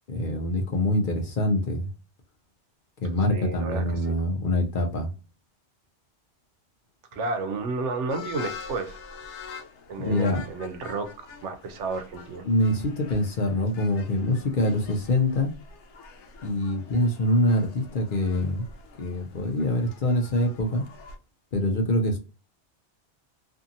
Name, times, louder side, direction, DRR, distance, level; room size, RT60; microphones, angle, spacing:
voice 1, 0.1-1.9 3.0-5.1 10.0-10.4 12.4-15.5 16.4-18.7 19.0-20.8 21.5-22.2, left 1 dB, 55° left, 0.6 m, -25 dB
voice 2, 3.3-4.2 7.1-9.0 9.9-12.5, right 3 dB, 80° right, 0.9 m, -32 dB
sound 1, 8.1-21.2, left 5 dB, 80° left, 0.9 m, -45 dB
2.6 x 2.6 x 2.6 m
omnidirectional pair, 1.2 m